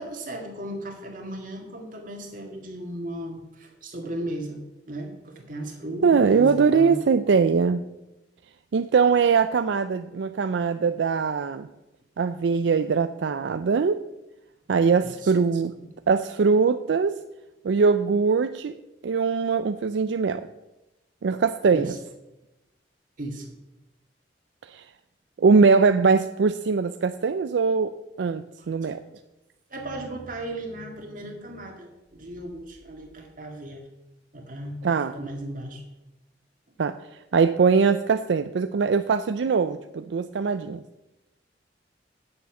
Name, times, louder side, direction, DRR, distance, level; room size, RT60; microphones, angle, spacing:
voice 1, 0.0-7.0 15.0-15.3 15.8-15.9 21.7-22.0 23.2-23.5 28.6-29.0 29.7-33.8 34.3-34.7 35.1-35.8, right 1 dB, 50° right, 2 dB, 2.0 m, -36 dB
voice 2, 6.0-7.8 8.7-11.7 12.2-14.0 14.7-15.7 16.1-17.2 17.6-18.8 19.0-20.5 21.2-21.9 24.6-24.8 25.4-27.9 28.2-29.0 34.8-35.1 36.8-37.0 37.3-40.8, right 5 dB, 80° right, 10 dB, 0.4 m, -21 dB
8.7 x 7.0 x 7.1 m, 0.98 s
head